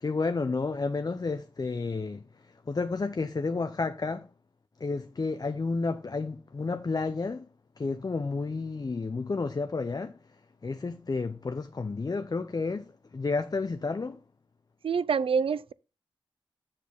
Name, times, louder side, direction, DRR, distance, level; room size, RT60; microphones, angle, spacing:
voice 1, 0.0-2.2 2.7-4.3 4.8-7.4 7.8-10.2 10.6-12.9 13.1-14.2, left 3 dB, 45° left, 0.6 m, -31 dB
voice 2, 14.8-15.7, right 6 dB, 80° right, 0.4 m, -26 dB
7.1 x 6.6 x 3.5 m
wide cardioid pair, 60°, 9 cm